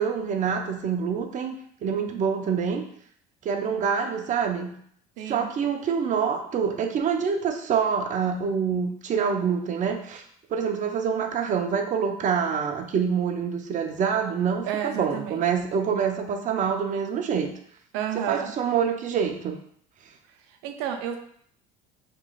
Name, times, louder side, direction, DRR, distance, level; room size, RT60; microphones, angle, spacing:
voice 1, 0.0-1.5 1.8-2.9 3.4-4.8 5.3-10.2 10.5-17.5 18.1-19.6, right 6 dB, 40° right, 5 dB, 0.6 m, -26 dB
voice 2, 5.2-5.5 14.7-15.4 17.9-18.5 20.3-21.2, right 9 dB, 80° right, 5 dB, 0.7 m, -31 dB
5.4 x 3.1 x 2.4 m, 0.64 s
cardioid pair, 115°, 20 cm